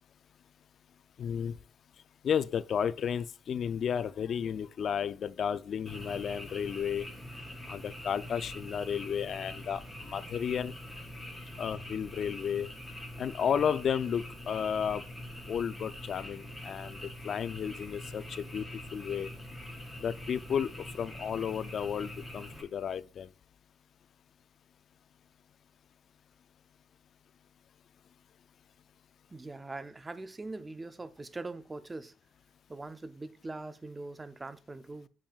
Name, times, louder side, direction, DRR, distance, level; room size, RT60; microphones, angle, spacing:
voice 1, 1.2-1.5 2.2-7.1 7.7-10.7 11.6-12.7 13.2-15.0 15.5-17.0 17.2-18.6 18.9-19.3 20.0-23.3, left 8 dB, 60° left, 0.4 m, -33 dB
Frog, 5.9-22.6, left 1 dB, 5° left, 3.7 m, -44 dB
voice 2, 29.3-32.1 32.7-35.1, right 2 dB, 20° right, 0.5 m, -42 dB
7.5 x 7.2 x 2.4 m
cardioid pair, 90°, 0 cm